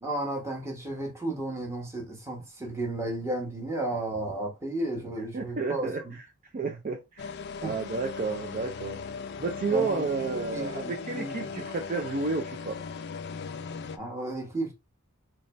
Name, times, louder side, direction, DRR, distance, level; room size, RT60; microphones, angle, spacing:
voice 1, 0.0-6.2 6.6-6.8 7.6-7.8 9.7-10.0 10.5-11.7 14.0-14.7, right 2 dB, 15° right, 1.0 m, -33 dB
voice 2, 5.3-6.2 6.5-7.3 7.6-9.0 9.4-12.8, right 4 dB, 40° right, 0.4 m, -31 dB
sound 1, 7.2-14.0, left 5 dB, 50° left, 0.3 m, -38 dB
4.0 x 2.2 x 3.1 m
head